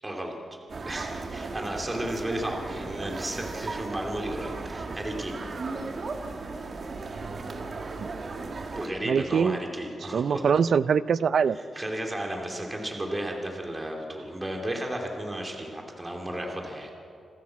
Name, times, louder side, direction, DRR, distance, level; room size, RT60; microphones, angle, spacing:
voice 1, 0.0-0.4 0.9-5.4 8.7-10.4 11.5-16.9, right 1 dB, 20° right, 1 dB, 2.6 m, -33 dB
sound 1, 0.7-8.9, right 3 dB, 45° right, 1.7 m, -36 dB
voice 2, 9.1-9.6 10.1-11.6, right 6 dB, 60° right, 17 dB, 0.5 m, -23 dB
27.0 x 13.5 x 7.5 m, 2.5 s
cardioid pair, 110°, 0 cm